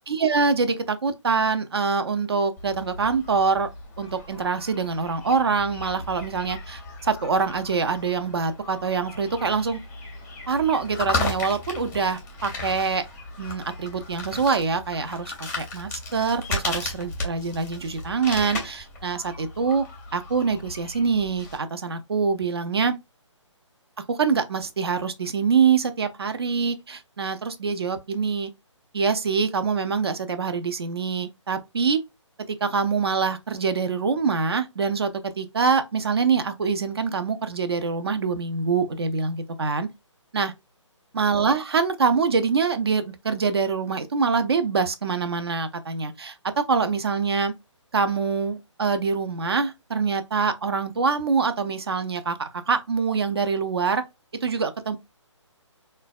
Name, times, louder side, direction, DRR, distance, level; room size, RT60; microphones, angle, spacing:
voice 1, 0.1-3.7 4.0-9.8 10.5-13.0 13.4-19.8 20.1-23.0 24.1-28.5 28.9-32.0 32.6-35.1 35.4-39.9 40.3-40.5 41.1-46.4 46.7-47.5 47.9-54.0 54.4-55.0, right 5 dB, 55° right, 0.5 m, -25 dB
sound 1, 2.6-21.6, left 3 dB, 10° left, 0.6 m, -35 dB
3.8 x 2.2 x 2.2 m
figure-of-eight pair, 140°, 16 cm